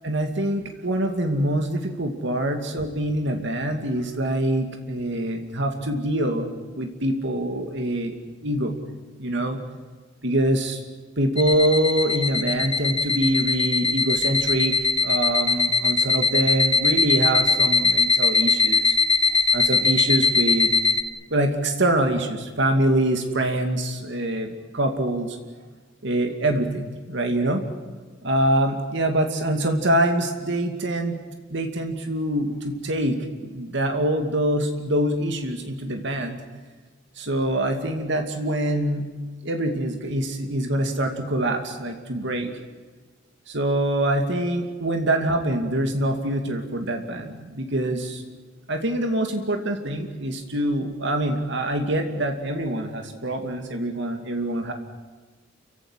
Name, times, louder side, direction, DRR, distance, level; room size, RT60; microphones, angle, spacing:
voice 1, 0.0-6.5 6.8-8.1 8.4-8.8 9.2-9.6 10.2-10.8 11.2-14.7 15.0-19.0 19.3-20.7 21.3-25.4 26.0-27.6 28.2-31.2 31.5-36.4 37.2-39.1 39.4-42.5 43.5-48.2 48.7-54.7, right 1 dB, 65° right, 5 dB, 2.5 m, -25 dB
sound 1, 11.4-21.0, left 4 dB, 30° left, 1.4 m, -21 dB
29.5 x 16.5 x 9.9 m, 1.4 s
head